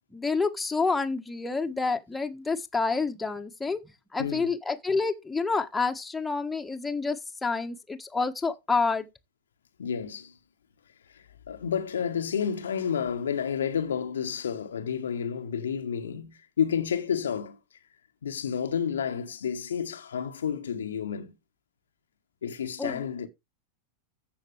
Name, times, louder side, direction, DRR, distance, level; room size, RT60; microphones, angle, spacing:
voice 1, 0.1-3.8 4.1-9.0 22.8-23.0, left 4 dB, 10° left, 1.4 m, -28 dB
voice 2, 9.8-10.4 11.1-17.6 18.2-21.3 22.4-23.3, left 7 dB, 65° left, 1.1 m, -30 dB
14.5 x 6.0 x 3.3 m
figure-of-eight pair, 90°, 0 cm